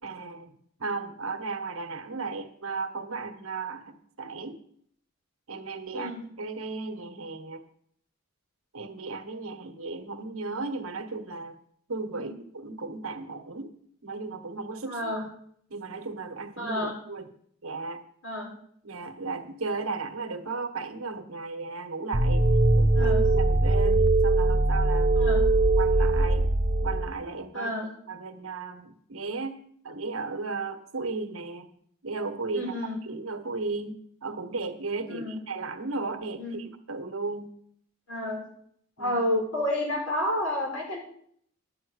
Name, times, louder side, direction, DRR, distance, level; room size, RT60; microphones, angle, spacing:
voice 1, 0.0-4.6 5.5-6.1 6.4-7.6 8.7-11.6 11.9-13.7 14.0-15.1 15.7-17.3 17.6-18.0 18.8-22.5 22.7-25.3 25.6-26.5 26.8-27.7 28.1-29.6 29.8-31.7 32.0-32.7 33.1-33.9 34.2-37.5 39.0-39.1, right 3 dB, 80° right, 7 dB, 1.2 m, -35 dB
voice 2, 14.9-15.2 16.6-16.9 18.2-18.5 22.9-23.2 25.1-25.4 27.5-27.9 32.5-33.0 35.1-35.4 36.4-36.6 38.1-38.4 39.0-41.0, left 1 dB, 75° left, -1 dB, 4.8 m, -30 dB
sound 1, 22.1-27.1, right 2 dB, 35° right, 0.8 m, -21 dB
11.0 x 5.8 x 8.0 m, 0.66 s
head